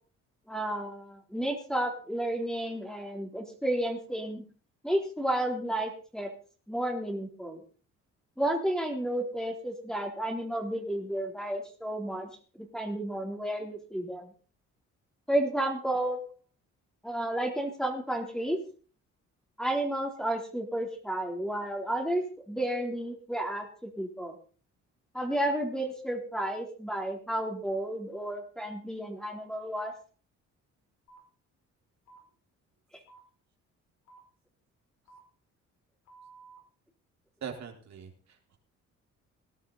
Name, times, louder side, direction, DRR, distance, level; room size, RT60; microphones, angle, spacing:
voice 1, 0.5-4.4 4.8-6.3 6.7-7.6 8.4-12.3 12.5-14.3 15.3-16.2 17.0-18.6 19.6-24.4 25.1-29.9, right 1 dB, ahead, 2 dB, 3.5 m, -32 dB
sound 1, 31.1-31.2 32.1-32.2 33.1-33.2 34.1-34.2 35.1-35.2 36.1-36.6, right 4 dB, 80° left, 5.3 m, -53 dB
voice 2, 37.4-38.6, right 7 dB, 65° right, 1 dB, 4.1 m, -42 dB
18.5 x 11.5 x 4.1 m, 0.40 s
cardioid pair, 90°, 30 cm